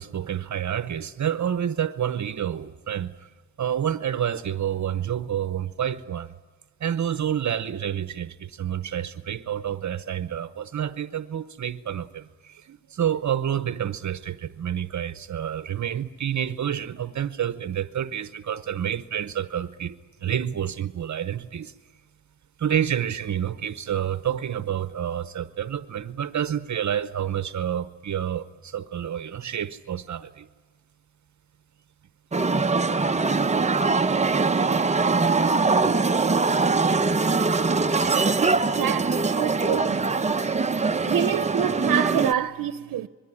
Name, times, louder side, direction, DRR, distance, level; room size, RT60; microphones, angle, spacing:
voice 1, 0.0-3.1 3.6-6.3 6.8-19.9 20.2-21.7 22.6-30.5, right 9 dB, 60° right, 0.9 m, -28 dB
sound 1, 32.3-42.3, right 4 dB, 20° right, 0.8 m, -22 dB
voice 2, 38.8-40.0 41.1-43.1, right 10 dB, 85° right, 0.8 m, -27 dB
26.0 x 22.0 x 10.0 m
cardioid pair, 100°, 33 cm